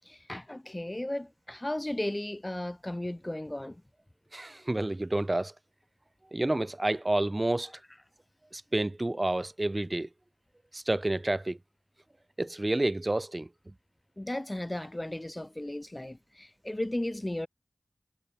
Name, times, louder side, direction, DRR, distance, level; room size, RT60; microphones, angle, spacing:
voice 1, 0.0-3.8 14.2-17.5, left 1 dB, 20° left, 7.1 m, -35 dB
voice 2, 4.3-5.5 6.3-7.7 8.5-10.1 10.7-11.6 12.4-13.5, right 1 dB, 30° right, 2.8 m, -29 dB
wide cardioid pair, 50°, 0 cm